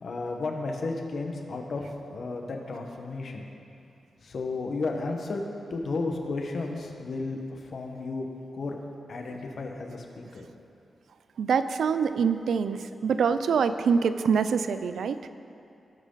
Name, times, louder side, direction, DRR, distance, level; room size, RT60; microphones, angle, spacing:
voice 1, 0.0-3.4 4.2-5.4 5.7-8.3 8.5-8.8 9.1-10.4, left 3 dB, 60° left, 2 dB, 1.2 m, -33 dB
voice 2, 11.4-15.3, right 6 dB, 80° right, 11 dB, 0.4 m, -25 dB
18.0 x 6.2 x 4.0 m, 2.7 s
cardioid pair, 90°, 0 cm